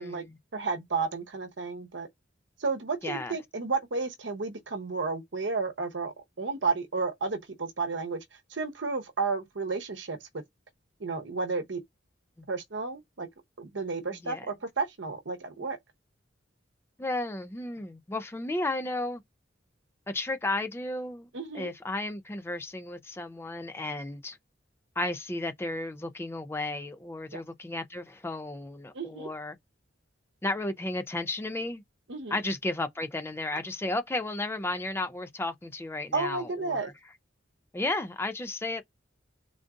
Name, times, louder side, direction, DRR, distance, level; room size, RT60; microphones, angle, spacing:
voice 1, 0.0-0.4 3.0-3.4 12.4-12.5 14.2-14.5 17.0-19.2 20.1-21.3 21.5-24.4 25.0-29.6 30.4-31.8 32.3-36.9 37.7-38.8, left 2 dB, 15° left, 0.4 m, -33 dB
voice 2, 0.5-2.1 2.6-8.2 8.5-10.4 11.0-11.8 12.5-13.3 13.6-15.8 21.3-21.7 27.3-27.4 28.9-29.3 32.1-32.4 36.1-36.9, right 4 dB, 65° right, 0.9 m, -32 dB
3.7 x 2.5 x 3.5 m
head